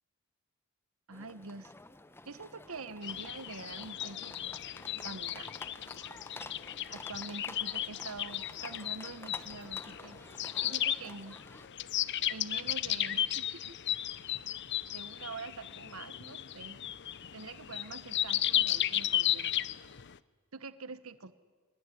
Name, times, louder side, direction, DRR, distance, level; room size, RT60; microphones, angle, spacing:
sound 1, 1.1-11.7, left 2 dB, 10° left, 0.8 m, -50 dB
voice 1, 1.1-1.7 2.2-4.6 5.0-5.5 6.9-10.2 10.6-11.4 12.3-13.8 14.9-16.8 17.3-19.7 20.5-21.3, right 4 dB, 75° right, 14 dB, 1.1 m, -45 dB
sound 2, 3.0-20.2, left 12 dB, 55° left, 0.7 m, -35 dB
24.0 x 20.5 x 9.9 m, 1.5 s
head